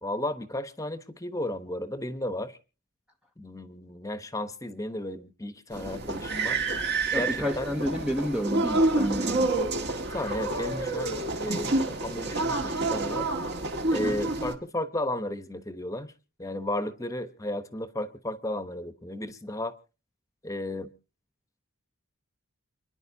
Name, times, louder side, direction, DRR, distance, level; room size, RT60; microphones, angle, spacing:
voice 1, 0.0-2.6 3.4-6.6 7.1-7.7 10.1-13.3 13.9-16.1 16.4-19.8 20.4-20.9, left 1 dB, 15° left, 1.0 m, -34 dB
sound 1, 5.7-14.5, right 2 dB, 50° right, 1.9 m, -28 dB
voice 2, 7.1-9.6 13.9-14.2, equal, 5° right, 0.7 m, -30 dB
29.0 x 10.5 x 2.8 m
head